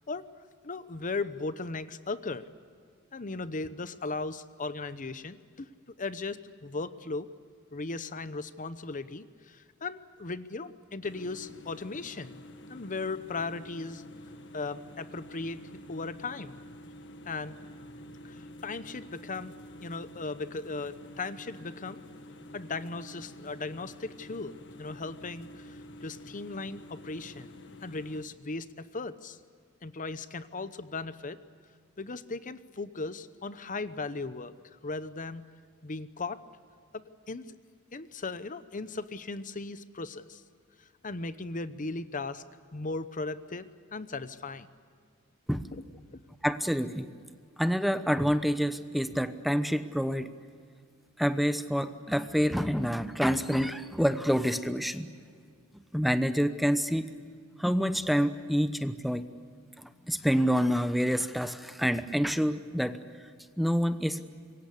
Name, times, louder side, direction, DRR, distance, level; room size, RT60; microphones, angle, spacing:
voice 1, 0.6-2.4 3.1-5.7 6.0-7.3 7.7-12.4 12.7-14.0 14.5-15.6 15.9-16.6 17.3-17.6 18.2-19.5 19.8-22.0 22.5-27.5 27.8-29.4 29.8-31.4 32.0-35.4 35.8-36.4 36.9-37.6 37.9-40.4 40.8-42.4 42.7-44.7 45.7-45.8 46.1-46.2, left 3 dB, 40° left, 13 dB, 0.9 m, -37 dB
sound 1, 11.0-28.2, left 1 dB, 60° left, 1.8 m, -48 dB
voice 2, 46.4-47.1 47.6-50.3 51.2-55.1 55.7-57.1 57.6-59.2 59.8-63.0 63.6-64.2, equal, ahead, 10 dB, 0.9 m, -27 dB
26.5 x 23.0 x 8.3 m, 2.1 s
head